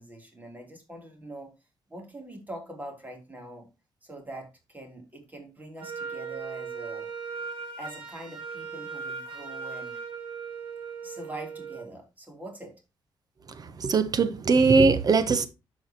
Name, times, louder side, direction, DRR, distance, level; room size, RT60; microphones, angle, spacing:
voice 1, 0.0-1.5 1.9-3.7 4.0-7.1 7.8-10.0 11.0-12.7, right 1 dB, 20° right, 3.2 m, -43 dB
Wind instrument woodwind instrument, 5.8-11.9, right 5 dB, 90° right, 2.6 m, -38 dB
voice 2, 13.5-15.5, right 4 dB, 50° right, 0.9 m, -21 dB
13.0 x 4.7 x 2.9 m
cardioid pair, 100°, 9 cm